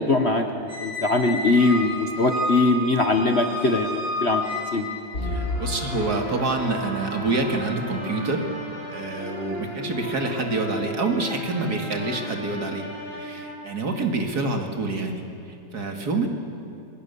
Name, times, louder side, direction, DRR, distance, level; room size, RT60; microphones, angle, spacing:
voice 1, 0.0-4.4 4.7-4.9, left 2 dB, 40° left, 5 dB, 1.4 m, -21 dB
Squeak, 0.7-5.2, left 1 dB, 10° left, 5.2 m, -30 dB
sound 1, 5.1-14.1, left 1 dB, 55° left, 8.1 m, -34 dB
voice 2, 5.2-8.5 8.9-12.9 13.1-16.3, right 3 dB, 55° right, 3 dB, 2.7 m, -27 dB
26.5 x 23.5 x 7.0 m, 2.8 s
omnidirectional pair, 2.0 m